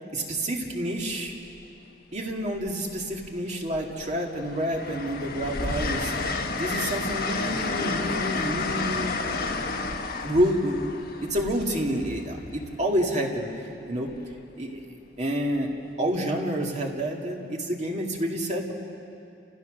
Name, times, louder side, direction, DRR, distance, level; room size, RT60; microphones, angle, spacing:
voice 1, 0.1-1.4 2.1-9.2 10.2-14.1 14.6-14.9 15.2-15.7 16.0-18.7, equal, 40° right, 0 dB, 2.3 m, -28 dB
Train, 1.1-1.3 2.6-3.3 3.7-12.5 14.1-14.3, left 3 dB, 55° left, 1.3 m, -31 dB
30.0 x 16.0 x 6.5 m, 2.7 s
head